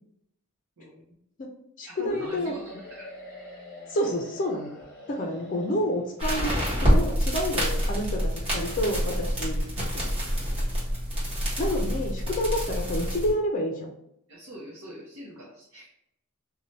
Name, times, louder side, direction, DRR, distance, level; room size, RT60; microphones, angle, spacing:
voice 1, 0.8-1.2 1.9-3.1 14.3-15.9, right 1 dB, 70° right, -5 dB, 0.8 m, -43 dB
voice 2, 1.8-2.6 3.9-4.7 5.1-10.1 11.6-13.9, equal, 40° left, 0 dB, 0.4 m, -29 dB
sound 1, 2.1-6.3, left 1 dB, 5° left, 1.0 m, -45 dB
sound 2, 6.2-13.3, equal, 25° right, 1.2 m, -27 dB
2.7 x 2.2 x 3.1 m, 0.77 s
head